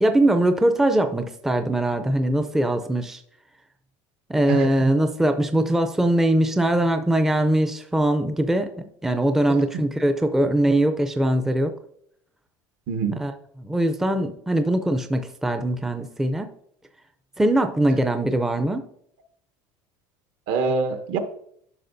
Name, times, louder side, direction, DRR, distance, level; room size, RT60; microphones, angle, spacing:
voice 1, 0.0-3.2 4.3-8.7 9.0-11.7 13.2-13.3 13.6-16.5 17.4-18.8, right 1 dB, 5° right, 7 dB, 0.5 m, -21 dB
voice 2, 4.5-4.9 12.9-13.2 20.5-21.2, right 5 dB, 65° right, 7 dB, 1.1 m, -25 dB
11.0 x 6.1 x 2.6 m, 0.69 s
supercardioid pair, 135°, 10 cm